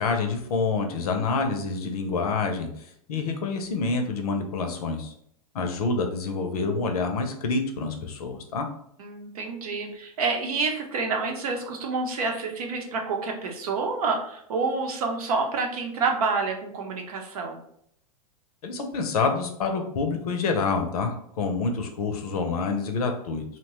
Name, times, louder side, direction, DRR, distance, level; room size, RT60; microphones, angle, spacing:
voice 1, 0.0-5.1 5.5-8.7 18.6-23.4, left 4 dB, 75° left, 5 dB, 0.6 m, -27 dB
voice 2, 9.0-17.6, right 4 dB, 75° right, 2 dB, 0.7 m, -28 dB
2.7 x 2.2 x 2.9 m, 0.69 s
hypercardioid pair, 110°, 19 cm